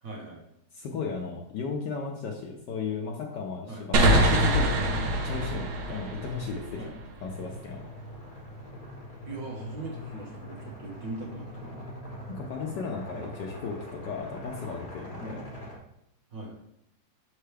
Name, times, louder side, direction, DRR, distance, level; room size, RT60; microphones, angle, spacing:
voice 1, 0.0-0.4 3.7-3.8 4.6-4.7 5.9-6.0 6.8-6.9 9.3-11.9 15.2-15.4 16.3-16.5, right 2 dB, 50° right, -1 dB, 1.3 m, -40 dB
voice 2, 0.7-6.8 7.2-7.9 12.3-15.4, left 5 dB, 70° left, 1 dB, 1.1 m, -35 dB
sound 1, 3.9-7.4, right 1 dB, 75° right, 1.7 m, -25 dB
sound 2, 7.3-15.8, left 1 dB, 30° left, 0.7 m, -42 dB
6.6 x 4.5 x 3.3 m, 0.78 s
omnidirectional pair, 2.4 m